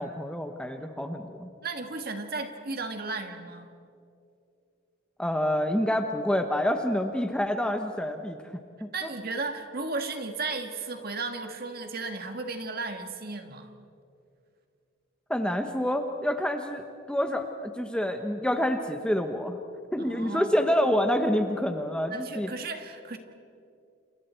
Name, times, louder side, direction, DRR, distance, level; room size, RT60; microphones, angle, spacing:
voice 1, 0.0-1.5 5.2-8.4 8.8-9.1 15.3-19.6 19.9-22.5, equal, 5° left, 5 dB, 1.0 m, -27 dB
voice 2, 1.6-3.7 8.9-13.7 20.0-20.6 22.1-23.2, right 3 dB, 50° right, 6 dB, 1.9 m, -35 dB
30.0 x 28.5 x 4.5 m, 2.5 s
head